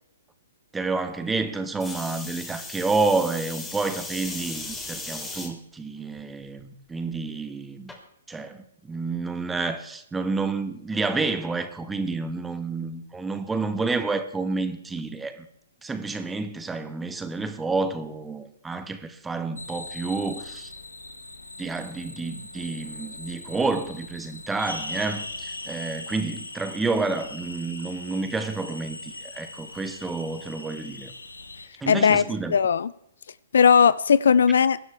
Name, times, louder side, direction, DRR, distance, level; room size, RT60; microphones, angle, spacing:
voice 1, 0.7-7.9 8.3-15.5 15.8-20.7 21.6-31.1 31.8-32.5, right 3 dB, 10° right, 1.4 m, -29 dB
sound 1, 1.8-5.5 6.2-6.6 7.9-8.0, left 2 dB, 10° left, 3.1 m, -37 dB
sound 2, 19.6-31.7, left 2 dB, 90° left, 1.5 m, -40 dB
voice 2, 31.9-32.2 32.5-32.9 33.5-34.8, left 6 dB, 70° left, 0.5 m, -18 dB
23.5 x 11.0 x 3.4 m
figure-of-eight pair, 125°, 0 cm